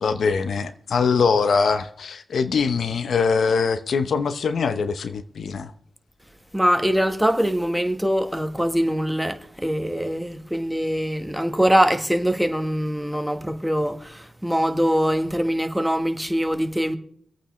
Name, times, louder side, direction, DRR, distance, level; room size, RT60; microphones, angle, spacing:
voice 1, 0.0-5.7, left 5 dB, 70° left, 0.8 m, -22 dB
voice 2, 6.5-17.0, equal, 5° right, 1.3 m, -23 dB
25.0 x 8.8 x 3.2 m
cardioid pair, 70°, 0 cm